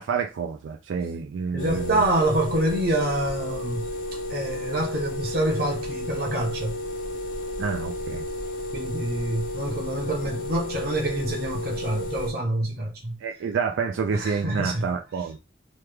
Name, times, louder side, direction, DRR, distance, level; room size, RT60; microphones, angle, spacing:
voice 1, 0.0-2.0 7.6-8.2 13.2-15.4, right 6 dB, 85° right, 0.3 m, -28 dB
voice 2, 1.5-6.8 8.7-13.2 14.1-14.9, right 1 dB, 50° right, 0.9 m, -27 dB
sound 1, 1.6-12.3, left 2 dB, 45° left, 0.6 m, -32 dB
3.1 x 2.2 x 3.3 m
head